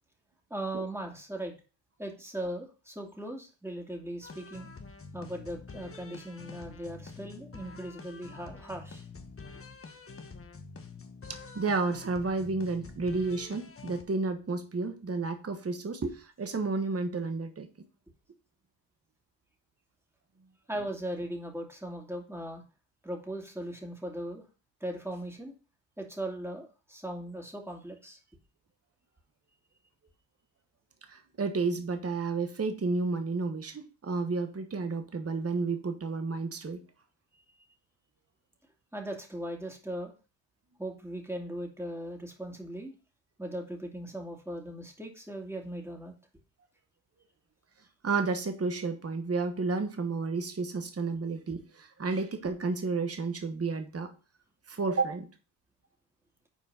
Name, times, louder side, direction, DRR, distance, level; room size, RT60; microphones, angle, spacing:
voice 1, 0.5-1.5 2.0-4.7 5.1-9.0 20.7-22.6 23.0-24.4 24.8-25.5 26.0-28.2 38.9-40.1 40.8-42.9 43.4-46.1, right 1 dB, 5° right, 1 dB, 2.6 m, -38 dB
sound 1, 4.2-14.0, left 4 dB, 30° left, 1.2 m, -47 dB
voice 2, 11.3-17.7 31.1-36.8 48.0-54.1 54.7-55.3, right 3 dB, 30° right, 7 dB, 1.3 m, -31 dB
6.1 x 4.4 x 5.6 m, 0.34 s
supercardioid pair, 50°, 48 cm